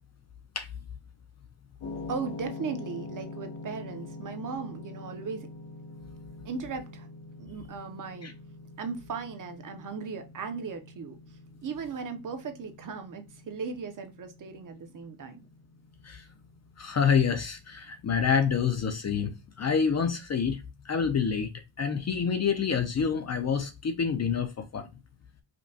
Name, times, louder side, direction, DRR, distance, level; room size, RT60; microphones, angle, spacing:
sound 1, 1.8-20.1, left 3 dB, 90° left, 1.1 m, -45 dB
voice 1, 2.1-5.5 6.4-7.1 7.4-8.3 8.8-11.2 11.6-15.5, right 5 dB, 40° right, 0.6 m, -37 dB
voice 2, 16.8-24.9, left 6 dB, 35° left, 0.5 m, -27 dB
5.1 x 2.2 x 2.7 m
cardioid pair, 155°, 49 cm